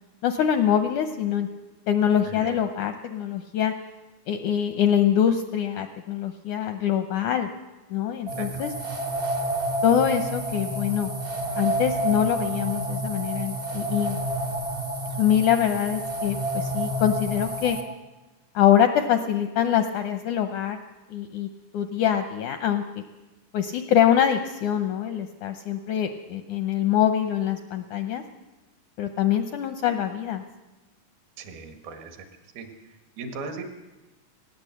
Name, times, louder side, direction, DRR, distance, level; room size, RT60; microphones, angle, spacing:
voice 1, 0.2-1.5 1.9-3.7 4.3-7.5 7.9-8.7 9.8-11.1 11.6-14.2 15.2-17.8 18.5-20.8 21.1-21.5 21.7-22.8 23.5-28.2 29.0-30.4, left 9 dB, 80° left, 7 dB, 1.8 m, -24 dB
sound 1, 8.3-17.8, right 1 dB, 50° right, 0.6 m, -29 dB
voice 2, 31.4-32.1 32.6-32.7 33.2-33.6, right 4 dB, 75° right, 5 dB, 3.8 m, -37 dB
19.0 x 17.5 x 7.9 m, 1.1 s
omnidirectional pair, 4.4 m